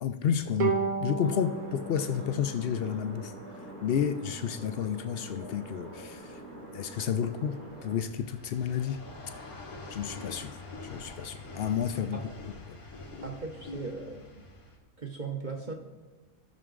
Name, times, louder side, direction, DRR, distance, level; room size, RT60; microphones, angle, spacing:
voice 1, 0.0-3.3 3.8-6.4 6.7-9.0 9.9-10.6 10.8-12.2 12.7-12.8, left 8 dB, 70° left, 9 dB, 0.5 m, -31 dB
Bowed string instrument, 0.6-3.9, right 5 dB, 80° right, 1.5 m, -34 dB
sound 1, 1.2-8.0, right 1 dB, 55° right, 2.0 m, -45 dB
sound 2, 5.3-14.8, left 2 dB, 90° left, 2.1 m, -46 dB
voice 2, 13.2-14.5 15.0-15.7, right 4 dB, 40° right, 2 dB, 0.8 m, -38 dB
16.5 x 6.1 x 3.7 m, 1.3 s
omnidirectional pair, 1.5 m